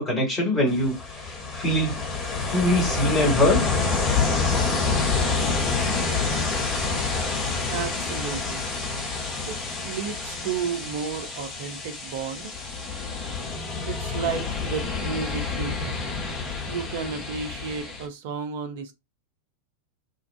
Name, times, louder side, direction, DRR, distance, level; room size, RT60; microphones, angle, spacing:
voice 1, 0.0-2.0 2.5-3.7, left 1 dB, 15° left, 1.4 m, -23 dB
Ocean, 0.7-18.1, left 4 dB, 40° left, 1.1 m, -28 dB
voice 2, 7.7-8.6 9.5-12.5 13.8-16.2 16.7-18.9, right 6 dB, 50° right, 0.5 m, -32 dB
2.5 x 2.4 x 2.3 m
figure-of-eight pair, 90°, 0 cm